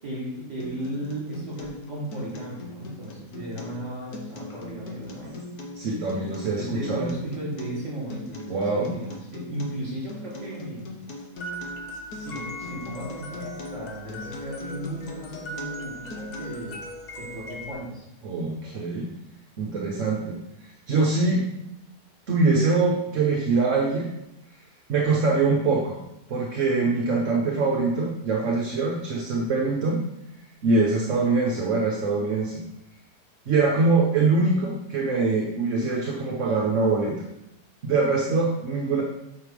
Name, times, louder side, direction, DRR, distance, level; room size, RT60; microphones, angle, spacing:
voice 1, 0.0-5.4 6.4-10.8 11.9-16.8 17.2-18.0, right 1 dB, 25° right, -6 dB, 3.1 m, -35 dB
Acoustic guitar, 0.6-16.6, left 2 dB, 70° left, 1.5 m, -40 dB
voice 2, 5.8-7.1 8.5-8.9 18.2-19.1 19.6-21.4 22.3-24.1 24.9-26.0 26.3-30.0 30.6-32.6 33.5-37.3 37.8-39.0, right 3 dB, 55° right, -1 dB, 1.2 m, -23 dB
sound 1, 11.4-17.7, equal, 85° left, 0.3 m, -39 dB
8.6 x 5.2 x 3.3 m, 0.85 s
omnidirectional pair, 1.7 m